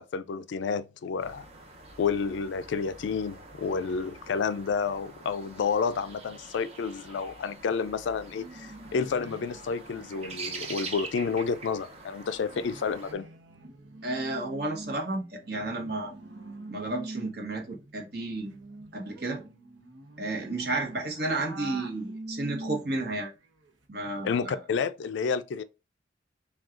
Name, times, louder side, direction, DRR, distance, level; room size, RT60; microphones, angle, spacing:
voice 1, 0.0-1.5 2.0-13.3 24.2-25.6, left 5 dB, 70° left, 0.3 m, -30 dB
sound 1, 1.2-13.1, right 3 dB, 35° right, 0.7 m, -45 dB
sound 2, 8.3-11.0 11.3-11.4 11.7-23.1 23.4-23.8, right 2 dB, 85° right, 0.8 m, -45 dB
voice 2, 14.0-16.1 16.7-18.6 18.9-19.4 20.2-23.3 23.9-24.6, right 2 dB, 55° right, 1.1 m, -32 dB
6.0 x 2.3 x 2.5 m
head